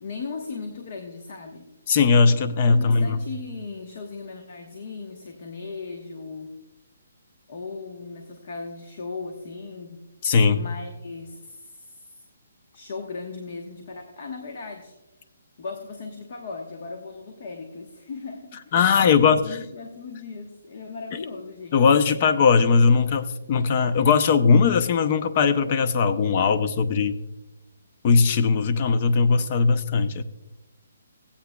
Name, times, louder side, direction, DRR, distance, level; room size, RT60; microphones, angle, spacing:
voice 1, 0.0-1.7 2.7-6.5 7.5-10.1 10.5-12.2 12.7-14.9 15.6-21.8, left 4 dB, 55° left, 4 dB, 1.1 m, -37 dB
voice 2, 1.9-3.2 10.2-10.6 18.7-19.5 21.7-27.2 28.0-30.2, left 5 dB, 40° left, 12 dB, 0.6 m, -19 dB
17.0 x 8.5 x 2.3 m, 1.0 s
hypercardioid pair, 155°, 0 cm